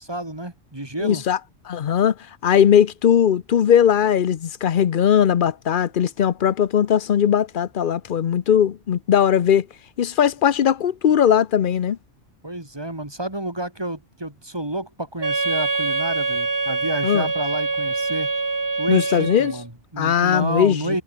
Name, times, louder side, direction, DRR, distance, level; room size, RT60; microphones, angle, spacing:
voice 1, 0.0-1.2 12.4-18.3 18.8-21.0, right 1 dB, 20° right, 2.5 m, -30 dB
voice 2, 1.0-1.4 1.7-2.1 2.4-9.7 10.0-12.0 17.0-17.3 18.9-19.5 20.0-21.0, left 9 dB, 50° left, 0.8 m, -19 dB
Wind instrument woodwind instrument, 15.2-19.7, right 3 dB, 50° right, 2.6 m, -24 dB
omnidirectional pair, 1.2 m